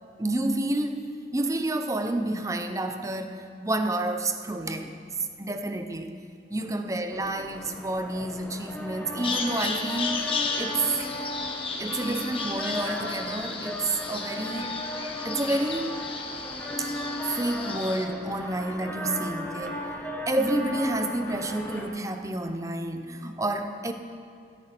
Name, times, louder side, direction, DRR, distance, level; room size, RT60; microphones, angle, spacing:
voice 1, 0.2-1.1 1.3-6.1 6.5-11.0 11.8-14.8 15.2-16.0 16.8-16.9 17.2-19.9 20.3-23.9, right 2 dB, 20° right, 7 dB, 0.7 m, -29 dB
sound 1, 7.1-21.9, left 1 dB, 10° left, 1.3 m, -36 dB
Bird vocalization bird call bird song, 9.2-18.1, left 4 dB, 30° left, 1.1 m, -34 dB
14.0 x 13.0 x 4.5 m, 2.4 s
head